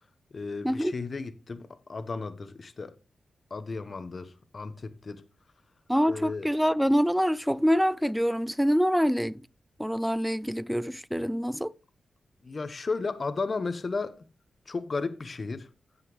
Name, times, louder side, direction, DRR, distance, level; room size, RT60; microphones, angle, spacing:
voice 1, 0.3-2.9 3.5-5.2 6.1-6.5 12.4-14.2 14.7-15.7, left 4 dB, 55° left, 1.1 m, -34 dB
voice 2, 5.9-9.4 9.8-11.7, equal, ahead, 0.4 m, -25 dB
16.5 x 5.6 x 3.2 m
supercardioid pair, 45°, 0 cm